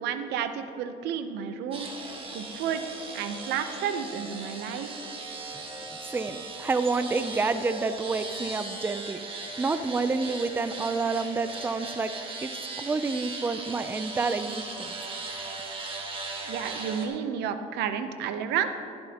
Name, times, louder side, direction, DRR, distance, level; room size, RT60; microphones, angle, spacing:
voice 1, 0.0-1.9 2.3-2.8 3.1-5.0 16.5-18.7, right 8 dB, 85° right, 9 dB, 0.7 m, -31 dB
sound 1, 1.7-17.1, right 3 dB, 30° right, 1.6 m, -38 dB
voice 2, 6.1-9.2 9.6-12.1 12.4-12.5 12.8-14.9, right 4 dB, 10° right, 11 dB, 0.4 m, -28 dB
14.0 x 11.5 x 2.9 m, 2.5 s
cardioid pair, 110°, 17 cm